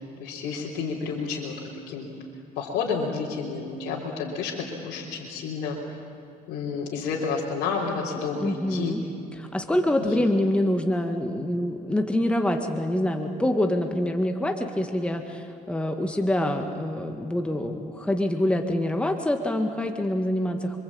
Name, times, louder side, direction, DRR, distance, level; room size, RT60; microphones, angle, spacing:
voice 1, 0.2-1.6 1.9-2.1 2.6-5.8 6.5-8.9 10.0-10.1, left 5 dB, 85° left, -4 dB, 3.7 m, -30 dB
voice 2, 8.4-9.0 9.3-20.8, left 1 dB, 5° left, 4 dB, 2.0 m, -25 dB
27.0 x 24.5 x 8.8 m, 2.8 s
cardioid pair, 110°, 17 cm